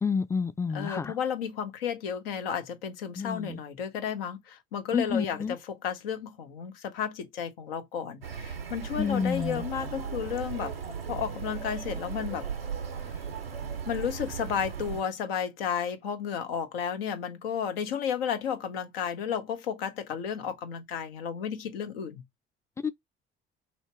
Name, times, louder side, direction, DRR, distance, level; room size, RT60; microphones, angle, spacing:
voice 1, 0.0-1.1 3.2-3.6 4.9-5.6 9.0-9.6 22.8-22.9, left 5 dB, 10° left, 0.4 m, -29 dB
voice 2, 0.7-10.7 11.1-12.5 13.9-22.2, left 8 dB, 75° left, 0.7 m, -33 dB
sound 1, 8.2-15.0, right 6 dB, 90° right, 0.6 m, -36 dB
3.0 x 2.8 x 4.3 m
figure-of-eight pair, 50°, 29 cm